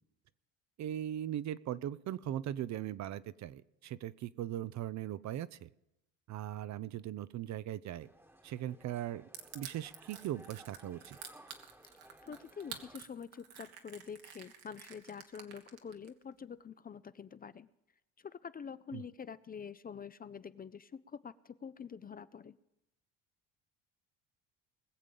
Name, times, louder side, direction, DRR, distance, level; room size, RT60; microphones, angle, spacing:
voice 1, 0.8-5.7 6.3-8.1 8.4-9.2 9.5-11.2 18.9-19.0, right 12 dB, 50° right, 17 dB, 0.6 m, -39 dB
sound 1, 8.0-13.0, right 1 dB, 5° right, 1.3 m, -59 dB
Crushing, 9.3-16.1, right 9 dB, 75° right, 1.8 m, -49 dB
voice 2, 12.2-17.7 18.2-22.5, left 6 dB, 25° left, 15 dB, 0.5 m, -46 dB
21.0 x 7.5 x 5.3 m, 0.92 s
supercardioid pair, 75°, 37 cm